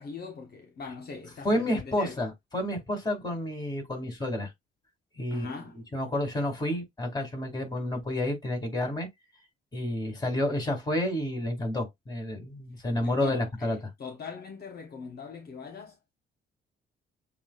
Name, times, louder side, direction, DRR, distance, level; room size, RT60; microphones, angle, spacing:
voice 1, 0.0-2.2 5.3-5.8 13.0-16.1, left 5 dB, 50° left, 1.2 m, -41 dB
voice 2, 1.4-4.5 5.2-5.5 5.9-9.1 9.7-13.8, left 1 dB, 20° left, 2.8 m, -30 dB
7.1 x 2.4 x 2.5 m
cardioid pair, 90°, 20 cm